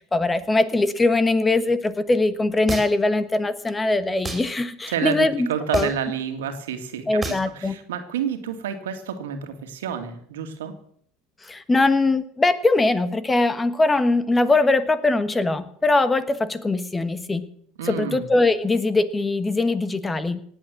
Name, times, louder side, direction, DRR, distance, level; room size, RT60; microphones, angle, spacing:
voice 1, 0.0-5.5 5.7-5.9 7.1-7.8 11.4-17.5 17.8-20.4, left 2 dB, 15° left, 13 dB, 1.3 m, -21 dB
sound 1, 2.7-3.1 4.2-4.5 5.7-6.1 7.2-7.5, right 2 dB, 20° right, 4.0 m, -30 dB
voice 2, 4.9-10.7 17.8-18.3, right 8 dB, 85° right, 7 dB, 2.1 m, -29 dB
18.0 x 8.5 x 7.6 m, 0.65 s
hypercardioid pair, 95°, 0 cm